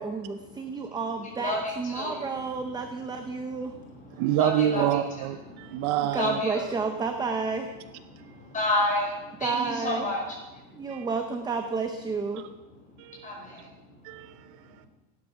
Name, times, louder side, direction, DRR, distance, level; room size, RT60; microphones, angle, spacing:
voice 1, 0.0-3.7 4.8-4.9 6.1-7.7 9.4-10.1 10.7-12.5, right 4 dB, 10° right, 6 dB, 0.5 m, -31 dB
voice 2, 1.4-2.2 3.6-4.9 5.5-5.9 6.1-6.6 8.1-10.8 12.9-13.7, left 1 dB, 20° left, -2 dB, 5.4 m, -31 dB
voice 3, 4.2-6.4 10.9-11.1 13.0-13.4 14.0-14.5, right 12 dB, 55° right, 11 dB, 0.7 m, -27 dB
17.0 x 11.5 x 5.7 m, 1.1 s
cardioid pair, 160°, 42 cm